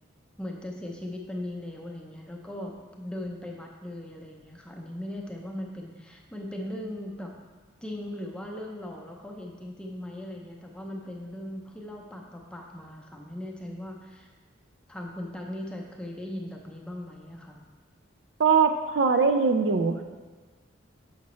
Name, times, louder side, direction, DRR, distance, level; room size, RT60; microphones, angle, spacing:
voice 1, 0.4-7.3 7.8-14.3 14.9-17.6, left 1 dB, 5° left, -1 dB, 0.6 m, -38 dB
voice 2, 18.4-20.0, right 5 dB, 65° right, 6 dB, 0.4 m, -22 dB
7.2 x 5.8 x 3.1 m, 1.4 s
head